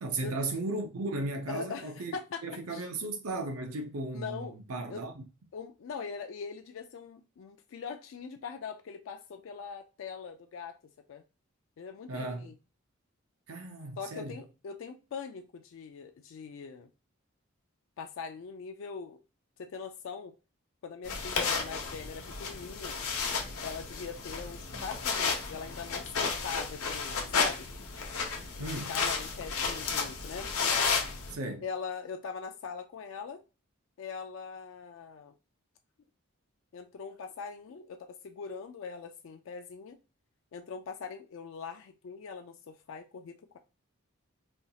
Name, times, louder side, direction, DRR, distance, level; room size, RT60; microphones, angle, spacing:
voice 1, 0.0-2.2 2.4-5.2 12.1-12.5 13.5-14.4 28.6-28.9 31.3-31.6, right 2 dB, 85° right, 0.6 m, -36 dB
voice 2, 1.5-2.4 2.7-2.9 4.1-4.6 4.9-5.1 5.5-10.8 11.1-11.2 11.8-12.5 14.0-16.9 18.0-19.2 19.6-20.3 20.8-23.0 23.6-27.7 28.6-30.5 31.6-33.4 34.0-35.3 36.7-40.0 40.5-43.6, left 5 dB, 60° left, 0.3 m, -42 dB
sound 1, 21.0-31.3, left 5 dB, 80° left, 0.9 m, -33 dB
4.3 x 2.3 x 2.7 m
head